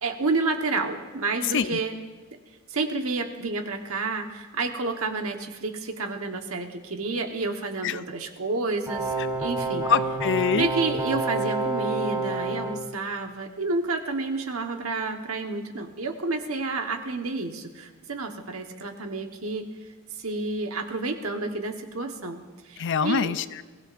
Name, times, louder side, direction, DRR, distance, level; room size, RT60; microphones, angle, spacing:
voice 1, 0.0-1.9 2.7-9.1 9.4-9.9 10.5-19.7 20.2-23.4, right 3 dB, 75° right, 5 dB, 1.3 m, -30 dB
voice 2, 1.5-1.8 7.8-8.0 9.9-10.7 22.8-23.6, left 6 dB, 60° left, 14 dB, 0.5 m, -25 dB
sound 1, 8.9-12.8, right 3 dB, 20° right, 4.5 m, -28 dB
22.0 x 16.0 x 2.6 m, 1.3 s
head